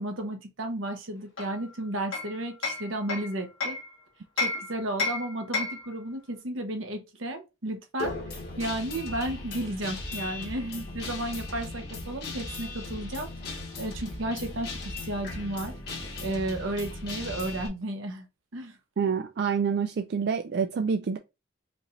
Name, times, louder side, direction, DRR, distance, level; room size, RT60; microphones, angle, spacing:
voice 1, 0.0-3.8 4.4-15.7 16.2-18.3 18.5-18.8, right 1 dB, 85° right, 1.1 m, -33 dB
Hammer, 1.4-3.9 4.4-5.9, left 3 dB, 90° left, 1.7 m, -32 dB
Guitar, 8.0-17.7, left 2 dB, 55° left, 1.5 m, -37 dB
voice 2, 19.0-21.2, right 6 dB, 55° right, 0.3 m, -27 dB
5.0 x 3.2 x 2.6 m
head